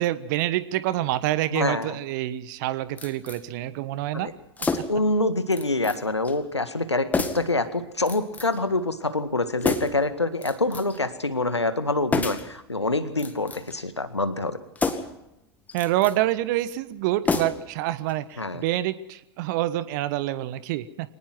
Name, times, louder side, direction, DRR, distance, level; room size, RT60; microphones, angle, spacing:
voice 1, 0.0-4.3 4.6-4.8 15.7-21.1, right 14 dB, 45° right, 16 dB, 1.2 m, -27 dB
voice 2, 1.5-2.0 4.1-4.3 4.9-14.6 18.4-18.6, left 2 dB, 85° left, 11 dB, 1.9 m, -26 dB
sound 1, 3.0-3.4 4.6-5.1 5.5-6.0 6.2-6.4 7.1-7.5 8.1-8.6 9.6-10.1 10.4-11.0 12.1-12.5 13.1-13.8 14.7-15.2 15.7-16.2 17.2-17.8 18.1-18.2, left 3 dB, 10° left, 2.0 m, -29 dB
25.0 x 19.0 x 6.0 m, 0.86 s
figure-of-eight pair, 95°, 14 cm